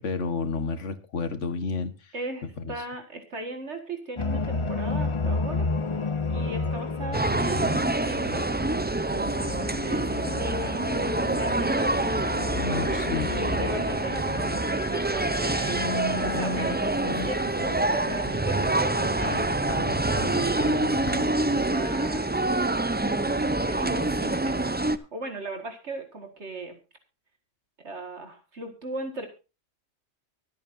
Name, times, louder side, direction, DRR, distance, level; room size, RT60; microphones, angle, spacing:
voice 1, 0.0-2.1 2.6-2.7 12.5-13.3, left 4 dB, 80° left, 10 dB, 1.7 m, -30 dB
voice 2, 2.1-5.7 6.3-8.4 9.1-11.9 13.0-15.9 16.3-19.9 20.2-22.6 23.0-26.8 27.8-29.3, right 2 dB, 70° right, 5 dB, 2.2 m, -38 dB
sound 1, 4.2-18.9 19.2-21.3, left 3 dB, 30° left, 0.7 m, -33 dB
sound 2, 7.1-25.0, right 2 dB, 15° right, 0.3 m, -26 dB
25.0 x 8.5 x 2.7 m, 0.31 s
omnidirectional pair, 1.2 m